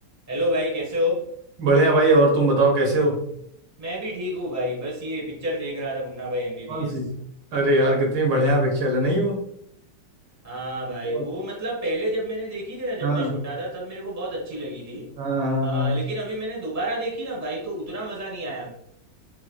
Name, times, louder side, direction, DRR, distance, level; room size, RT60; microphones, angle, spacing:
voice 1, 0.3-1.3 3.8-7.0 10.4-15.1 15.6-18.7, equal, 10° right, -4 dB, 0.9 m, -29 dB
voice 2, 1.6-3.3 6.7-7.2 7.5-9.4 11.0-11.2 13.0-13.4 15.2-15.9, right 1 dB, 85° right, 0 dB, 1.8 m, -21 dB
4.9 x 3.0 x 2.3 m, 0.73 s
omnidirectional pair, 2.0 m